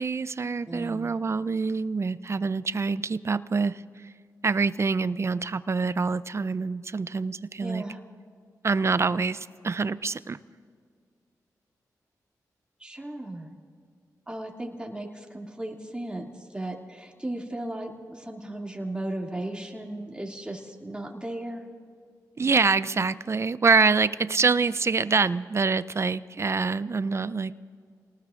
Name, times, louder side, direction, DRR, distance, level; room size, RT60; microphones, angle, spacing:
voice 1, 0.0-3.8 4.4-7.8 8.6-10.4 22.4-27.5, right 4 dB, 40° right, 16 dB, 0.5 m, -25 dB
voice 2, 0.7-1.1 7.6-8.0 12.8-13.5 14.3-16.3 16.5-21.6, right 1 dB, 15° right, 0 dB, 2.5 m, -36 dB
29.0 x 19.5 x 2.5 m, 2.1 s
cardioid pair, 50°, 7 cm